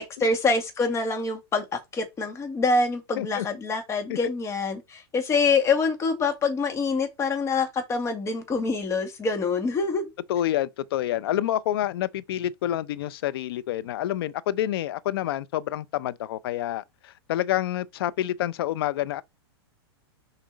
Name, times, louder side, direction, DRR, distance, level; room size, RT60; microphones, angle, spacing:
voice 1, 0.0-10.1, left 4 dB, 20° left, 2.0 m, -25 dB
voice 2, 10.3-19.2, left 12 dB, 65° left, 0.6 m, -28 dB
6.5 x 4.3 x 4.1 m
hypercardioid pair, 130°, 14 cm